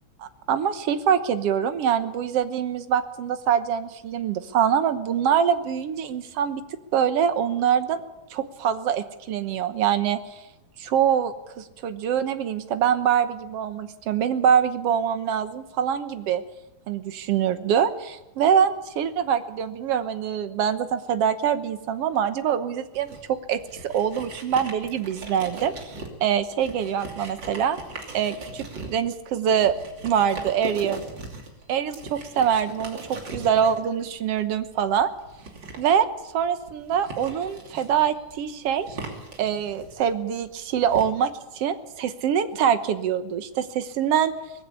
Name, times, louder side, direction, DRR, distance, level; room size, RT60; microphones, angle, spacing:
voice 1, 0.2-6.6 6.9-8.0 8.3-10.4 10.8-16.4 16.9-23.2 23.5-27.8 28.1-29.7 30.0-31.0 31.7-33.0 33.3-35.1 35.8-36.1 36.3-39.0 39.4-44.3, right 8 dB, 60° right, 10 dB, 1.8 m, -24 dB
sound 1, 22.9-41.0, right 3 dB, 35° right, 3.4 m, -40 dB
19.5 x 15.5 x 8.7 m, 0.97 s
omnidirectional pair, 3.5 m